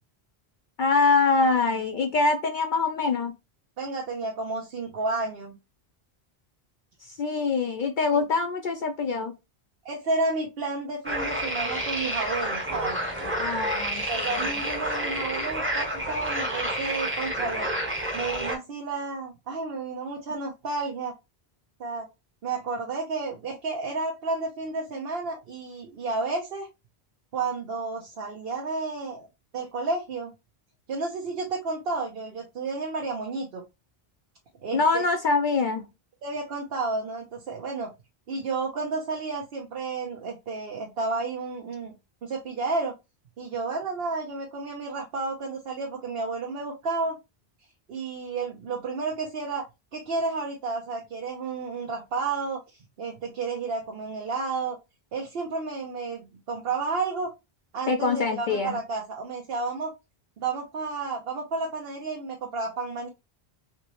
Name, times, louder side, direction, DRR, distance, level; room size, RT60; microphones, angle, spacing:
voice 1, 0.8-3.3 7.2-9.3 13.4-14.3 34.7-35.9 57.9-58.8, left 4 dB, 60° left, 0.6 m, -24 dB
voice 2, 3.8-5.5 9.8-13.0 14.1-17.7 18.1-21.1 21.8-22.1 22.4-26.7 27.3-29.3 29.5-30.3 30.9-33.6 34.6-35.0 36.2-37.9 38.3-41.9 42.2-42.9 43.4-47.2 47.9-49.7 49.9-54.8 55.1-57.3 57.7-59.9 60.4-63.1, right 3 dB, 65° right, 1.0 m, -31 dB
sound 1, 11.0-18.6, right 1 dB, 10° right, 0.9 m, -29 dB
3.5 x 2.9 x 3.0 m
omnidirectional pair, 1.1 m